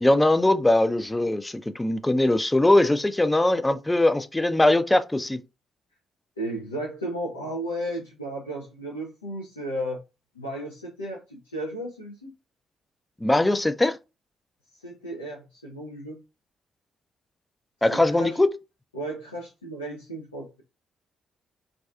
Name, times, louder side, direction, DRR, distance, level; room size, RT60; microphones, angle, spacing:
voice 1, 0.0-5.4 13.2-14.0 17.8-18.5, left 1 dB, 15° left, 0.3 m, -21 dB
voice 2, 6.4-10.0 10.3-12.3 14.7-16.2 17.9-18.4 18.9-20.6, right 1 dB, 85° left, 0.4 m, -34 dB
2.3 x 2.3 x 2.3 m
figure-of-eight pair, 40°, 0 cm